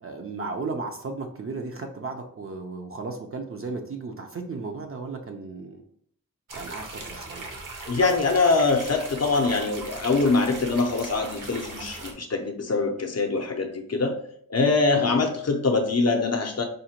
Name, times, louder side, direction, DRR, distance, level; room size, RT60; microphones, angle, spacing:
voice 1, 0.0-5.8 6.5-7.4 14.9-15.2, right 3 dB, 40° right, 3 dB, 0.4 m, -35 dB
sound 1, 6.5-12.1, right 2 dB, 65° right, 0.8 m, -39 dB
voice 2, 7.9-14.2 14.5-16.6, left 3 dB, 50° left, 3 dB, 0.5 m, -23 dB
5.0 x 2.1 x 2.8 m, 0.63 s
wide cardioid pair, 95°, 34 cm